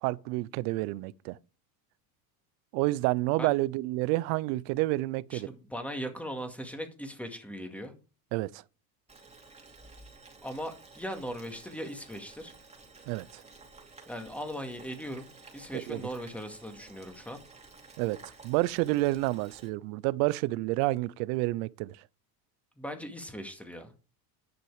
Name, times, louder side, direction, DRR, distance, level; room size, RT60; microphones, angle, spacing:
voice 1, 0.0-1.4 2.7-5.5 8.3-8.6 13.1-13.4 15.9-16.0 18.0-18.2 18.4-22.0, right 20 dB, 75° right, 0.7 m, -29 dB
voice 2, 5.3-7.9 10.4-12.5 14.1-17.4 22.8-23.9, equal, 5° left, 2.1 m, -39 dB
Boiling, 9.1-19.7, right 3 dB, 15° right, 2.6 m, -53 dB
10.5 x 6.1 x 4.9 m
supercardioid pair, 110°, 46 cm